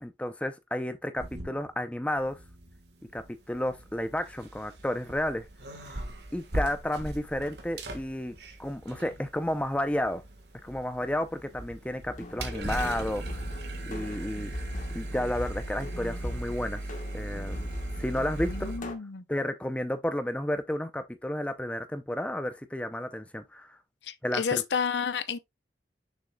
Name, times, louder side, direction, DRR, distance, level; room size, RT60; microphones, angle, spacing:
voice 1, 0.0-2.4 3.1-5.5 6.3-10.2 10.6-13.2 13.9-14.5 14.9-16.8 17.1-17.7 18.0-18.7 19.3-23.8 24.2-24.6, left 1 dB, 5° left, 0.6 m, -32 dB
sound 1, 1.2-1.9 2.2-18.8, right 1 dB, 70° right, 1.5 m, -39 dB
sound 2, 12.1-18.9, left 1 dB, 45° left, 1.3 m, -40 dB
voice 2, 18.4-19.2 24.0-25.4, left 6 dB, 80° left, 0.7 m, -31 dB
6.6 x 6.3 x 2.3 m
head